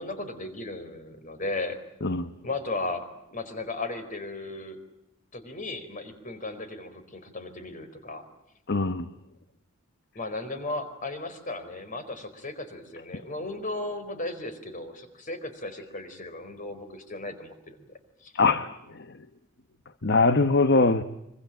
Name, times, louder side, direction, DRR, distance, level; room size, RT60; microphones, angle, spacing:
voice 1, 0.0-1.8 2.4-4.8 5.3-8.2 10.1-17.9 18.2-18.3, left 2 dB, 40° left, 9 dB, 4.5 m, -36 dB
voice 2, 2.0-2.3 8.7-9.1 18.3-19.2 20.0-21.0, left 3 dB, 55° left, 11 dB, 1.1 m, -23 dB
25.0 x 25.0 x 9.0 m, 0.83 s
head